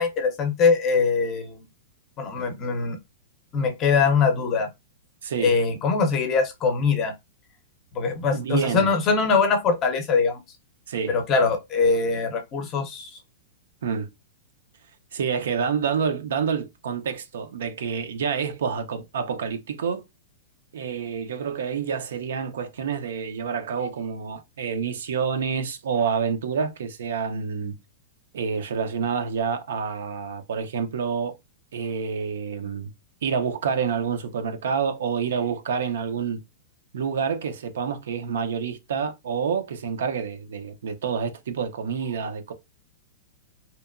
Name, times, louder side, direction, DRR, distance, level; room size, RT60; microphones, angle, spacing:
voice 1, 0.0-1.7 2.2-3.0 3.5-4.7 5.4-7.1 7.9-10.4 11.1-13.2, left 5 dB, 25° left, 0.5 m, -22 dB
voice 2, 5.2-5.6 8.3-8.9 10.9-11.2 13.8-14.1 15.1-20.0 20.7-27.7 28.3-31.4 31.7-32.9 33.2-36.4 36.9-42.5, right 6 dB, 80° right, 0.4 m, -28 dB
2.8 x 2.1 x 2.4 m
supercardioid pair, 165°, 0 cm